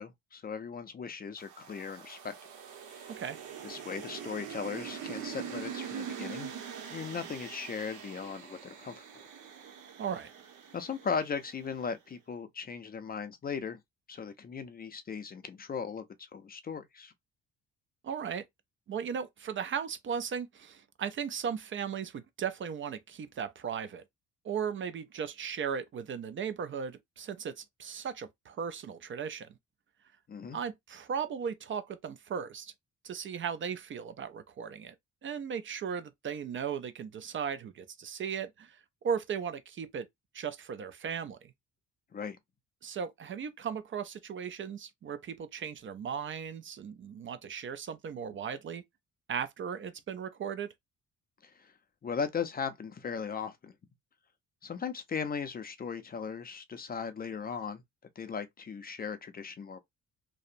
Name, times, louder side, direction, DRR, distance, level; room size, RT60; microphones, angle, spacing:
voice 1, 0.0-2.3 2.9-3.1 3.6-6.5 6.9-9.0 10.7-13.8 14.1-16.0 16.3-17.1 30.3-30.6 42.1-42.4 51.4-51.7 52.0-53.7 54.6-57.8 58.2-59.8, left 6 dB, 30° left, 0.4 m, -38 dB
sound 1, 1.4-11.7, right 8 dB, 75° right, 0.8 m, -43 dB
voice 2, 3.1-3.4 10.0-10.3 18.0-18.4 18.9-24.0 24.4-29.5 30.5-32.7 33.0-34.9 35.2-40.1 40.3-41.5 42.8-48.8 49.3-50.7, right 7 dB, 40° right, 0.4 m, -37 dB
2.7 x 2.0 x 2.5 m
cardioid pair, 90°, 30 cm